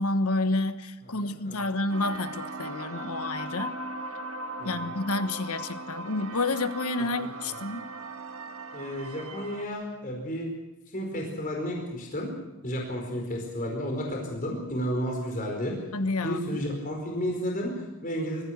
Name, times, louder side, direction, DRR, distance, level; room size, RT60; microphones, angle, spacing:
voice 1, 0.0-3.8 4.6-7.8 15.9-16.4, left 2 dB, 85° left, 11 dB, 1.2 m, -29 dB
voice 2, 1.2-1.8 4.6-5.0 7.2-7.3 8.7-10.5 10.9-12.3 12.6-15.8 16.2-18.4, equal, 40° left, 0 dB, 4.9 m, -32 dB
sound 1, 1.9-9.7, right 2 dB, 75° right, 1.8 m, -38 dB
24.0 x 14.5 x 8.1 m, 1.0 s
head